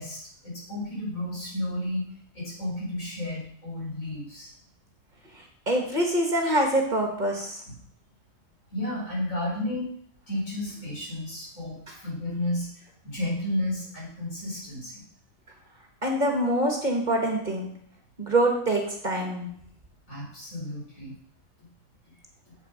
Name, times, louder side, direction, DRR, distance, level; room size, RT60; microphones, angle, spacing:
voice 1, 0.0-2.0 2.3-4.5 7.7-7.8 8.7-9.9 10.3-15.0 20.1-21.1, left 1 dB, 75° left, -5 dB, 4.8 m, -32 dB
voice 2, 5.7-7.6 16.0-17.7 18.2-19.5, right 1 dB, 35° right, 1 dB, 1.6 m, -25 dB
7.8 x 6.7 x 5.3 m, 0.63 s
omnidirectional pair, 1.4 m